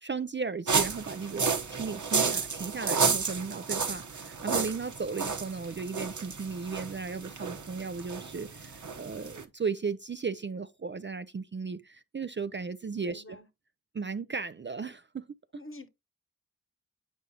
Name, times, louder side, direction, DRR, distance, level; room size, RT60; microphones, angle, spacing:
voice 1, 0.0-13.4 13.9-15.4, right 5 dB, 35° right, 0.4 m, -36 dB
sound 1, 0.7-9.4, right 5 dB, 60° right, 0.9 m, -31 dB
voice 2, 13.0-13.5 15.5-15.9, left 1 dB, 40° left, 0.9 m, -46 dB
8.1 x 4.8 x 2.7 m
wide cardioid pair, 50°, 33 cm